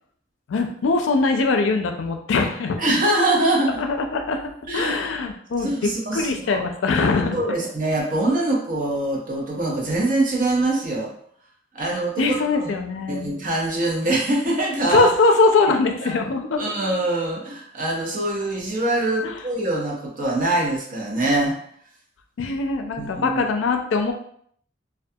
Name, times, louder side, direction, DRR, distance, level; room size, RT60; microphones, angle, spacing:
voice 1, 0.5-2.8 3.8-4.4 4.7-7.4 12.2-13.3 14.9-16.6 19.2-19.4 22.4-24.1, left 3 dB, 90° left, 5 dB, 0.4 m, -22 dB
voice 2, 2.8-3.7 4.7-4.9 5.6-6.6 7.3-11.1 11.7-12.7 13.1-15.1 16.0-16.1 16.6-21.5 23.0-23.4, right 2 dB, 45° right, -2 dB, 0.7 m, -23 dB
2.3 x 2.2 x 2.6 m, 0.63 s
head